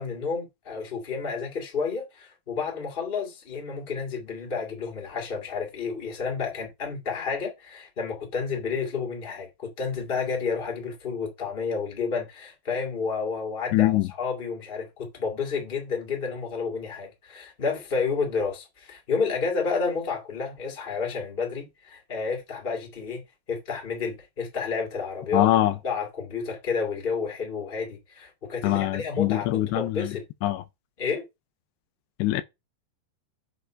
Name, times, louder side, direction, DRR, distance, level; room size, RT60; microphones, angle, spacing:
voice 1, 0.0-23.2 23.5-25.5 25.8-30.2 31.0-31.2, left 5 dB, 20° left, 1.7 m, -30 dB
voice 2, 13.7-14.1 25.3-25.7 28.6-30.2 30.4-30.6 32.2-32.4, left 15 dB, 85° left, 2.9 m, -23 dB
8.0 x 3.3 x 6.2 m
omnidirectional pair, 4.9 m